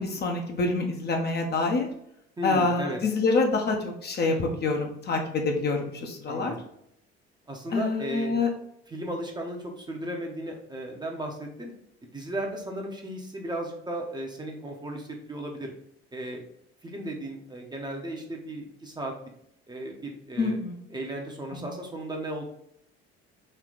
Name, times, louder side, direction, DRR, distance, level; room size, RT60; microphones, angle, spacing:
voice 1, 0.0-1.9 2.4-3.8 4.0-6.6 7.7-8.5 20.4-20.8, left 3 dB, 30° left, 2 dB, 0.7 m, -26 dB
voice 2, 2.4-3.0 6.3-6.7 7.5-8.3 8.9-11.7 12.1-15.7 16.1-16.4 16.8-19.1 19.7-20.6 20.9-22.4, right 1 dB, 15° right, 1 dB, 0.7 m, -35 dB
3.2 x 3.2 x 3.8 m, 0.73 s
figure-of-eight pair, 60°, 32 cm